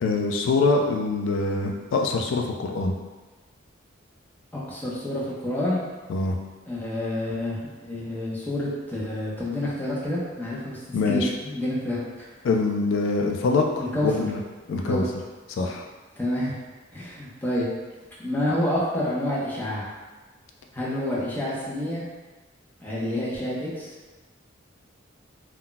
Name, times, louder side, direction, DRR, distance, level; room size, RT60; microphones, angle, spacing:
voice 1, 0.0-2.9 6.1-6.4 10.9-11.3 12.4-13.7 14.0-14.4 14.7-15.1 15.6-15.8, left 3 dB, 75° left, 2 dB, 0.3 m, -24 dB
voice 2, 4.5-5.8 6.7-10.8 11.1-12.3 13.8-14.3 14.6-15.1 16.2-16.6 16.9-17.7 18.2-19.9 20.7-22.0 22.8-23.9, left 1 dB, 10° left, -7 dB, 0.6 m, -28 dB
2.3 x 2.1 x 3.8 m, 1.3 s
head